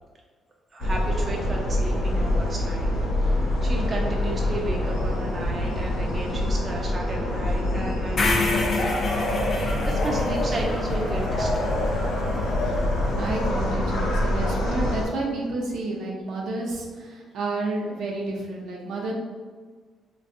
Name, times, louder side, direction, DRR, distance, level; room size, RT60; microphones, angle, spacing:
voice 1, 0.7-2.9 3.2-3.3 3.6-12.0 12.6-12.7, right 1 dB, 35° right, -1 dB, 0.4 m, -34 dB
sound 1, 0.8-15.1, left 1 dB, 90° left, 0.6 m, -25 dB
voice 2, 3.8-4.3 4.8-5.0 9.9-10.2 12.6-12.7 13.2-19.1, right 2 dB, 75° right, -2 dB, 0.6 m, -31 dB
sound 2, 8.2-12.3, left 3 dB, 50° left, 0.4 m, -28 dB
3.3 x 2.2 x 2.6 m, 1.5 s
cardioid pair, 90°, 0 cm